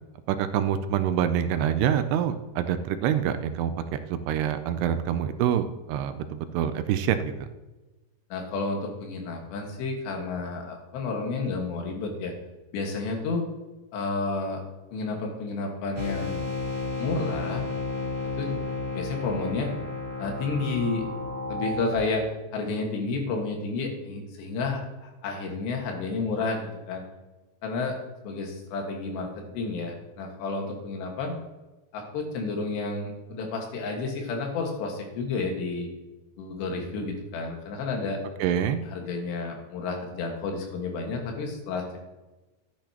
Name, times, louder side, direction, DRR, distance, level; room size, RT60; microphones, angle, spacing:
voice 1, 0.3-7.3 38.4-38.8, right 9 dB, 80° right, 10 dB, 2.6 m, -26 dB
voice 2, 8.3-12.3 12.7-13.4 13.9-14.6 14.9-16.5 17.0-17.7 18.4-18.6 18.9-19.7 20.2-21.1 21.5-22.2 22.5-27.0 27.6-28.0 28.2-31.3 31.9-35.9 36.4-38.2 38.8-42.0, left 3 dB, 80° left, 2 dB, 3.9 m, -31 dB
sound 1, 15.9-21.9, left 2 dB, 25° right, 2.1 m, -32 dB
12.5 x 10.0 x 2.9 m, 1.1 s
omnidirectional pair, 4.8 m